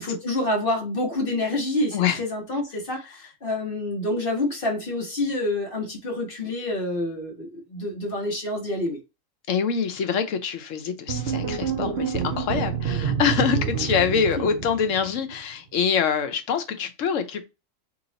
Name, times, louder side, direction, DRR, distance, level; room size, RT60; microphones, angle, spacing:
voice 1, 0.0-9.0 14.4-14.5, left 1 dB, 45° left, 1.4 m, -27 dB
voice 2, 9.5-17.4, left 7 dB, 80° left, 1.1 m, -25 dB
sound 1, 11.1-15.3, right 7 dB, 60° right, 0.8 m, -28 dB
3.1 x 3.0 x 3.9 m
omnidirectional pair, 1.3 m